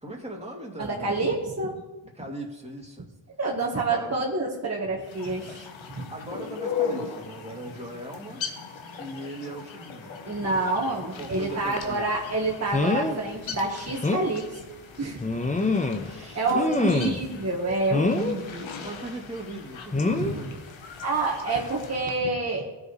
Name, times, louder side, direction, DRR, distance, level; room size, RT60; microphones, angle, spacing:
voice 1, 0.0-1.2 2.1-3.1 3.7-4.2 6.1-8.4 9.0-10.1 11.2-12.1 16.0-17.1 17.3-17.4 18.8-20.6, right 1 dB, 15° right, -1 dB, 2.5 m, -39 dB
voice 2, 0.8-1.8 3.4-5.7 5.9-6.0 10.2-14.4 15.0-15.2 16.2-18.7 20.1-20.4 21.0-22.7, right 3 dB, 35° right, -3 dB, 1.5 m, -28 dB
sound 1, 5.0-22.1, left 6 dB, 80° left, 1.1 m, -39 dB
sound 2, 11.8-11.9 12.7-13.2 13.6-13.7 14.0-14.3 15.2-16.1 16.5-17.3 17.9-18.4 19.9-20.3 21.5-21.7 22.1-22.2, left 3 dB, 15° left, 0.9 m, -25 dB
15.0 x 5.1 x 3.2 m, 1.1 s
supercardioid pair, 40°, 46 cm